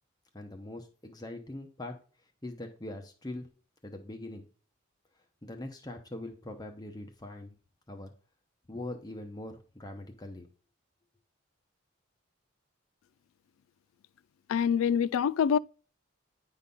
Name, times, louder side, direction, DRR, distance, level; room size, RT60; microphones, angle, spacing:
voice 1, 0.3-2.0 2.4-3.5 3.8-4.5 5.4-7.6 7.9-8.1 8.7-10.5, left 1 dB, 20° left, 0.8 m, -42 dB
voice 2, 14.5-15.6, left 7 dB, 85° left, 0.3 m, -25 dB
9.6 x 4.0 x 5.4 m
head